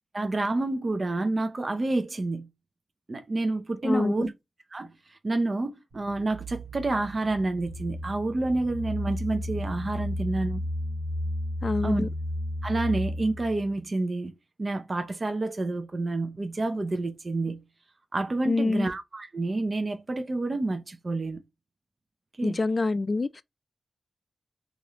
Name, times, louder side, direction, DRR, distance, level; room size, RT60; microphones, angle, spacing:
voice 1, 0.1-2.5 3.1-4.3 4.7-10.6 11.8-12.0 12.6-14.3 14.6-17.6 18.1-21.4 22.4-22.6, right 2 dB, 45° right, 0.5 m, -29 dB
voice 2, 3.8-4.3 11.6-12.1 18.5-18.9 22.4-23.4, left 3 dB, 45° left, 0.3 m, -26 dB
sound 1, 5.9-13.7, left 1 dB, 75° right, 1.0 m, -33 dB
3.0 x 2.5 x 2.8 m
cardioid pair, 65°, 0 cm